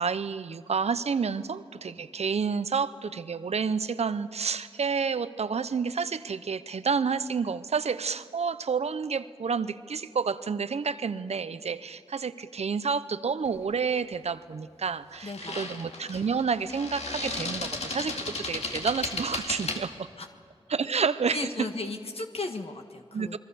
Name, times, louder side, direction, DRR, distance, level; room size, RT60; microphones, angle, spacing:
voice 1, 0.0-20.1 20.7-21.5 23.1-23.4, right 5 dB, 85° right, 14 dB, 0.8 m, -29 dB
sound 1, 13.4-13.7 15.1-19.8, left 3 dB, 85° left, 2.4 m, -35 dB
voice 2, 15.2-15.8 20.2-20.3 21.3-23.4, left 2 dB, 65° left, 4 dB, 1.6 m, -36 dB
28.0 x 21.5 x 7.0 m, 2.3 s
cardioid pair, 45°, 11 cm